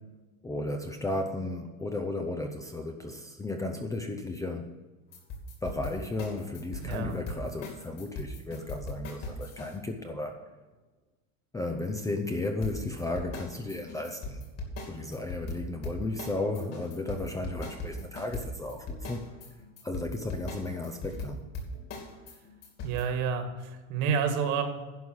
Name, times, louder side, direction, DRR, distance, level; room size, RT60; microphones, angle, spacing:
voice 1, 0.4-4.8 5.6-10.4 11.5-14.5 14.9-19.2 19.8-21.4, left 2 dB, 10° left, 3 dB, 0.5 m, -34 dB
sound 1, 5.1-9.7 12.6-23.0, left 2 dB, 40° left, 2.7 m, -39 dB
voice 2, 6.8-7.1 22.8-24.6, right 6 dB, 55° right, 6 dB, 1.9 m, -29 dB
11.0 x 5.5 x 7.8 m, 1.3 s
supercardioid pair, 145°, 38 cm